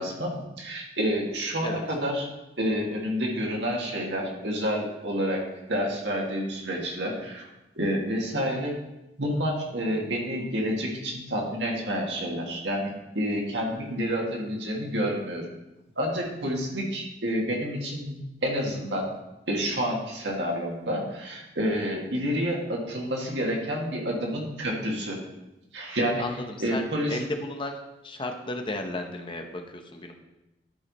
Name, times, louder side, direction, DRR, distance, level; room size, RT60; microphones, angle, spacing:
voice 1, 0.0-2.2 2.6-7.4 7.8-8.7 9.2-15.5 16.0-19.1 19.5-25.2 25.7-26.2 26.6-27.2, equal, 80° right, -1 dB, 1.9 m, -29 dB
voice 2, 26.2-26.8 27.1-30.1, left 1 dB, 30° left, 4 dB, 0.8 m, -34 dB
12.0 x 4.8 x 4.2 m, 0.97 s
head